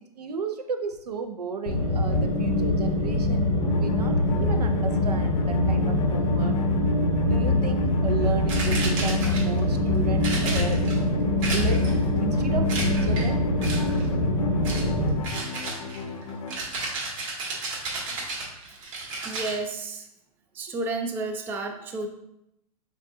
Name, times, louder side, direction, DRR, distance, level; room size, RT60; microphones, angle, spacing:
voice 1, 0.2-6.5 7.2-10.8 11.5-11.9 12.2-13.3, right 5 dB, 85° right, 6 dB, 0.7 m, -34 dB
sound 1, 1.7-15.1, left 1 dB, 85° left, 1.1 m, -23 dB
sound 2, 3.6-16.5, left 4 dB, 60° left, 0.7 m, -38 dB
sound 3, 8.5-9.6 10.2-11.0 11.4-12.0 12.7-13.3 13.6-14.0 14.6-14.9 15.2-19.6, right 3 dB, 55° right, 1.8 m, -33 dB
voice 2, 19.2-20.1 20.5-22.1, right 3 dB, 10° right, 6 dB, 0.3 m, -31 dB
5.3 x 2.4 x 3.8 m, 0.81 s
hypercardioid pair, 120°, 20 cm